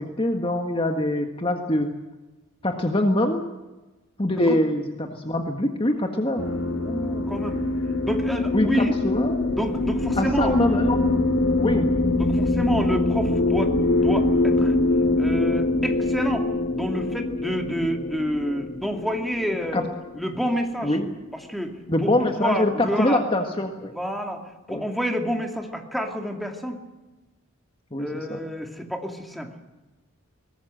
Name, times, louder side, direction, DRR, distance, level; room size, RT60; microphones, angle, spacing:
voice 1, 0.0-1.9 2.6-3.4 4.2-6.4 8.5-9.5 10.2-11.0 11.6-11.9 19.7-19.8 20.8-21.1 21.9-23.9 24.7-24.8 27.9-28.4, left 1 dB, 25° left, 4 dB, 1.6 m, -24 dB
sound 1, 6.4-20.9, left 2 dB, 85° left, 3.1 m, -24 dB
voice 2, 6.8-7.6 8.0-8.9 9.4-10.5 12.2-14.7 15.2-16.5 16.7-19.8 20.1-21.0 21.5-21.7 22.0-23.2 23.9-24.4 24.7-26.8 28.0-29.5, equal, ahead, 3 dB, 2.6 m, -29 dB
22.5 x 20.0 x 7.8 m, 1.1 s
head